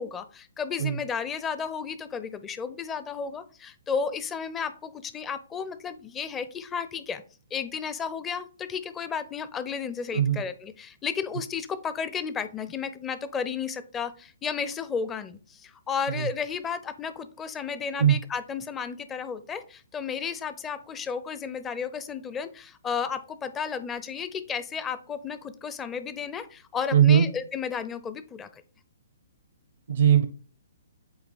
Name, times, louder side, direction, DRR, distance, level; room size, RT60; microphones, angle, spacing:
voice 1, 0.0-7.2 7.5-28.6, left 6 dB, 15° left, 12 dB, 0.5 m, -33 dB
voice 2, 26.9-27.3 29.9-30.2, right 9 dB, 70° right, 10 dB, 0.6 m, -19 dB
8.0 x 2.8 x 4.1 m, 0.37 s
hypercardioid pair, 135°, 0 cm